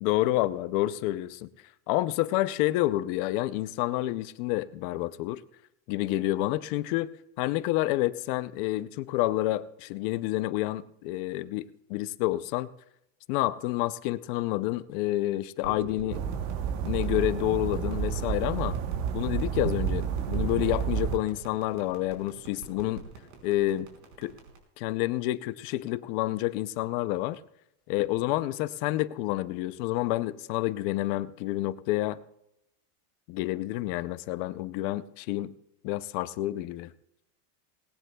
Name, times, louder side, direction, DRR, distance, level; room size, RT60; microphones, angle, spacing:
voice 1, 0.0-1.5 1.9-5.4 5.9-7.1 7.4-12.7 13.3-16.2 16.8-18.8 19.1-23.0 23.4-23.9 24.2-24.3 24.8-27.4 27.9-32.2 33.3-35.5 35.8-36.9, left 16 dB, 40° left, 15 dB, 0.4 m, -29 dB
sound 1, 15.6-24.6, right 4 dB, 65° right, 4.7 m, -44 dB
sound 2, 16.1-21.2, right 8 dB, 40° right, 0.9 m, -30 dB
19.5 x 18.0 x 2.2 m, 0.82 s
supercardioid pair, 160°, 45 cm